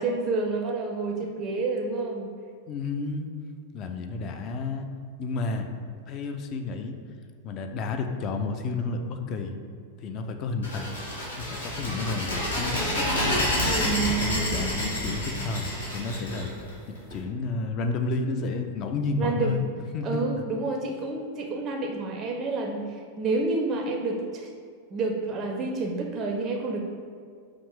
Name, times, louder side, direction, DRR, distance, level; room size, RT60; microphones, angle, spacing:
voice 1, 0.0-2.3 13.6-14.8 19.2-19.7 20.0-24.5 24.9-26.8, right 3 dB, 30° right, 2 dB, 0.4 m, -29 dB
voice 2, 1.2-1.6 2.7-3.3 3.7-4.9 5.2-5.7 6.1-7.0 7.4-9.6 10.0-10.9 11.4-12.8 13.2-13.5 14.2-16.5 16.9-19.6 19.9-20.2, left 3 dB, 35° left, 5 dB, 0.4 m, -31 dB
sound 1, 10.6-17.1, left 1 dB, 70° left, 1.0 m, -28 dB
5.0 x 2.4 x 3.5 m, 2.2 s
figure-of-eight pair, 90°, 0 cm